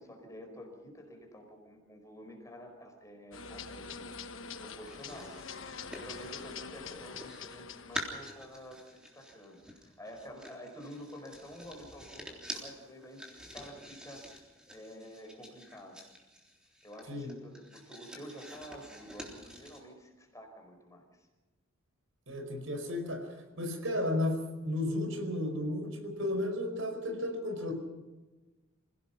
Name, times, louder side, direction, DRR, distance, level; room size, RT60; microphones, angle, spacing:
voice 1, 0.0-4.1 4.6-5.4 5.9-16.0 16.8-21.3, equal, 15° left, 3 dB, 4.6 m, -49 dB
sound 1, 3.3-8.3, left 5 dB, 65° left, 1.2 m, -45 dB
sound 2, 4.8-7.5 7.9-19.8, equal, 5° right, 3.6 m, -47 dB
voice 2, 22.3-23.3 23.6-27.7, left 1 dB, 70° right, 6 dB, 4.8 m, -33 dB
27.5 x 17.0 x 5.8 m, 1.2 s
head